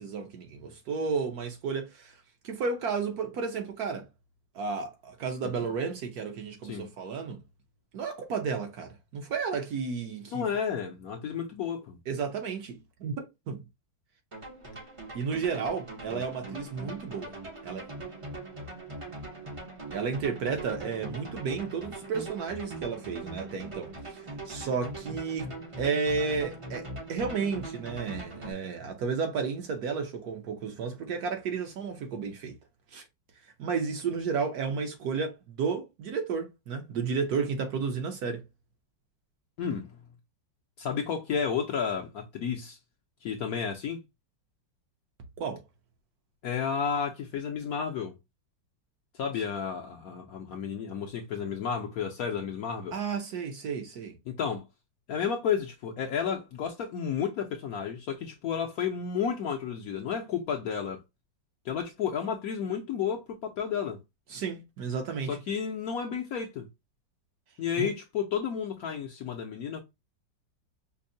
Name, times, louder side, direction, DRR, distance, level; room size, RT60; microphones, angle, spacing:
voice 1, 0.0-2.2 2.4-4.1 4.5-7.4 7.9-10.5 12.1-13.6 15.1-17.3 17.6-17.9 19.9-25.5 25.8-32.5 32.9-33.0 33.6-38.4 45.4-45.6 52.9-54.2 64.3-65.4 67.8-67.9, right 5 dB, 65° right, 1.1 m, -32 dB
voice 2, 10.3-12.0 39.6-39.9 40.8-42.8 43.2-44.0 46.4-48.1 49.2-52.9 54.3-54.7 55.1-61.0 61.6-64.0 65.3-66.7 67.6-69.8, left 7 dB, 65° left, 0.9 m, -32 dB
sound 1, 14.3-28.5, right 1 dB, 35° right, 0.5 m, -41 dB
5.3 x 2.1 x 2.6 m
omnidirectional pair, 2.0 m